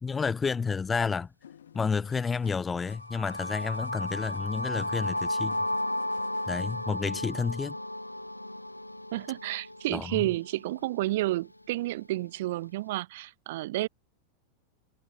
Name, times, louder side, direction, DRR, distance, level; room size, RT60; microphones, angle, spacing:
voice 1, 0.0-1.3 1.7-5.6 6.5-7.8 9.9-10.3, left 5 dB, 15° left, 0.8 m, -30 dB
sound 1, 1.4-6.8, left 9 dB, 65° left, 1.2 m, -55 dB
sound 2, 2.9-10.8, left 1 dB, 85° left, 0.6 m, -34 dB
voice 2, 9.1-13.9, right 17 dB, 55° right, 0.6 m, -31 dB
figure-of-eight pair, 90°, 0 cm